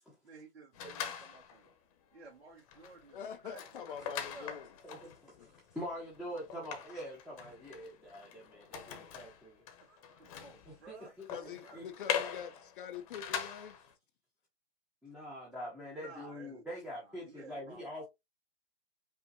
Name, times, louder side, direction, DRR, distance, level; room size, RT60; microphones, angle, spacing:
voice 1, 0.2-1.7 2.1-4.6 9.8-12.4 12.8-13.0 15.9-16.6 16.9-18.1, right 3 dB, 75° right, 1.7 m, -55 dB
sound 1, 0.7-1.7 2.1-2.3 2.6-13.9, left 8 dB, 30° left, 1.0 m, -42 dB
voice 2, 3.1-4.7 5.4-5.5 11.3-13.8, left 8 dB, 50° left, 0.6 m, -45 dB
voice 3, 4.8-9.7 10.7-11.3 11.7-11.8 15.0-18.1, equal, ahead, 0.9 m, -44 dB
5.4 x 2.9 x 2.7 m
hypercardioid pair, 145°, 33 cm